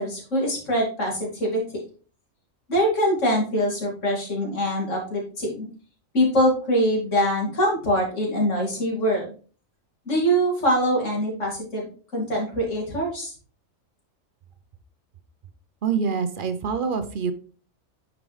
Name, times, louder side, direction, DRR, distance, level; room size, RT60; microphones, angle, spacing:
voice 1, 0.0-1.8 2.7-5.7 6.1-9.2 10.1-13.3, equal, 65° left, -2 dB, 2.7 m, -23 dB
voice 2, 15.8-17.3, right 6 dB, 50° right, 10 dB, 0.7 m, -25 dB
9.1 x 4.9 x 3.2 m, 0.40 s
omnidirectional pair, 1.4 m